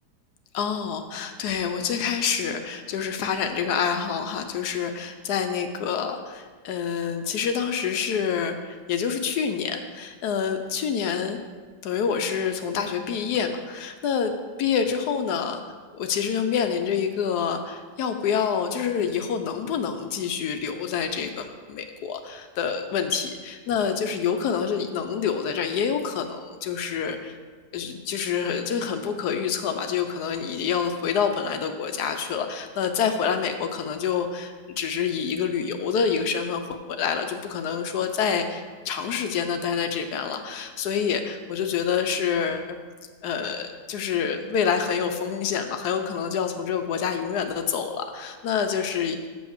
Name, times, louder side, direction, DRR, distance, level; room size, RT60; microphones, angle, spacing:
voice 1, 0.5-11.4 11.8-15.6 15.9-27.4 27.7-42.8 43.2-49.2, left 7 dB, 75° left, 6 dB, 1.1 m, -27 dB
7.3 x 5.2 x 6.5 m, 1.5 s
omnidirectional pair, 1.8 m